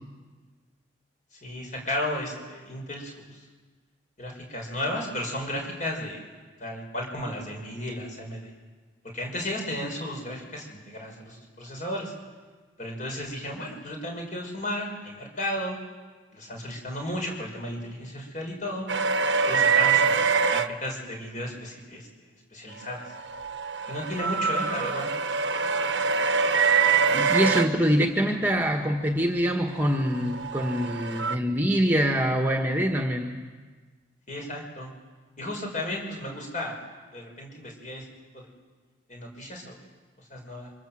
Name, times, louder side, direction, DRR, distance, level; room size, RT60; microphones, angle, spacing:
voice 1, 1.4-3.4 4.2-6.2 6.6-8.5 9.1-12.1 12.8-15.8 16.3-18.9 19.5-20.2 20.5-23.1 23.9-25.1 34.3-34.9 35.4-36.8 37.1-38.1 38.3-38.5 39.1-39.7 40.3-40.7, left 1 dB, 40° left, 1 dB, 6.1 m, -34 dB
sound 1, 18.9-20.7 23.1-27.7 30.1-31.4, right 5 dB, 70° right, 1.0 m, -24 dB
voice 2, 27.1-33.3, equal, 10° right, 3 dB, 1.6 m, -24 dB
28.0 x 25.5 x 7.7 m, 1.4 s
head